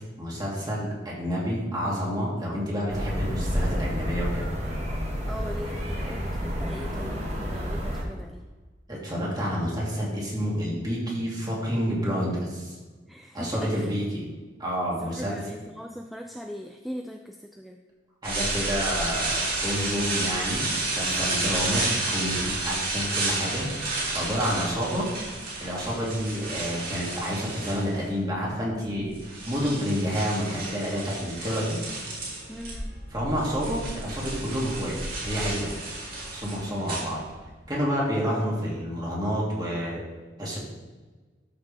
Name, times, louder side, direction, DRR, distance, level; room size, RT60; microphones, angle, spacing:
voice 1, 0.2-4.4 8.9-12.8 13.3-14.3 14.6-15.4 18.2-23.7 24.1-25.1 25.6-29.2 29.5-31.8 33.1-35.0 35.2-35.7 36.3-37.2 37.7-40.0 40.4-40.6, equal, 20° right, -5 dB, 2.6 m, -29 dB
sound 1, 2.9-8.0, equal, 35° right, 1.8 m, -30 dB
voice 2, 5.3-8.4 13.0-13.9 15.0-17.8 32.5-33.0, equal, ahead, 3 dB, 0.4 m, -39 dB
sound 2, 18.2-28.1 28.9-32.7 33.0-37.6, right 2 dB, 55° right, 2.8 m, -31 dB
sound 3, 31.8-37.1, equal, 90° right, 3.1 m, -40 dB
12.5 x 5.9 x 3.4 m, 1.3 s
head